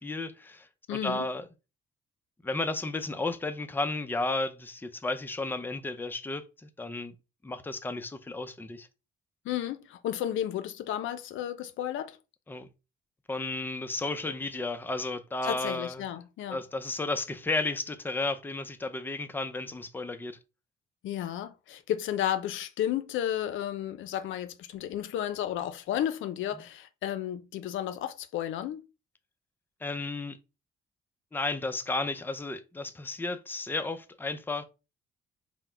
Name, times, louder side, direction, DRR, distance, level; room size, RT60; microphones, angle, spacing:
voice 1, 0.0-1.4 2.4-7.1 7.4-8.9 12.5-12.7 13.3-16.0 16.5-20.4 29.8-30.4 31.3-34.6, left 2 dB, 10° left, 0.5 m, -33 dB
voice 2, 0.9-1.3 9.4-12.2 15.4-16.6 21.0-28.8, left 11 dB, 80° left, 0.5 m, -33 dB
3.8 x 2.1 x 4.4 m
cardioid pair, 90°, 20 cm